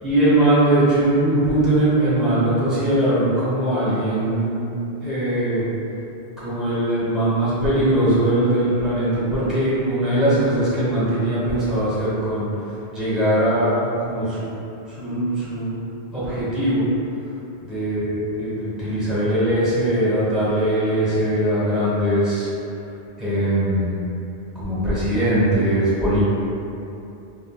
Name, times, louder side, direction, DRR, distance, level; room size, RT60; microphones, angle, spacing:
voice 1, 0.0-4.6 5.0-5.6 6.4-14.6 14.9-15.7 16.1-16.8 17.7-22.5 23.2-24.0 24.5-26.2, right 1 dB, ahead, -11 dB, 0.8 m, -21 dB
3.8 x 2.1 x 2.2 m, 2.8 s
omnidirectional pair, 1.1 m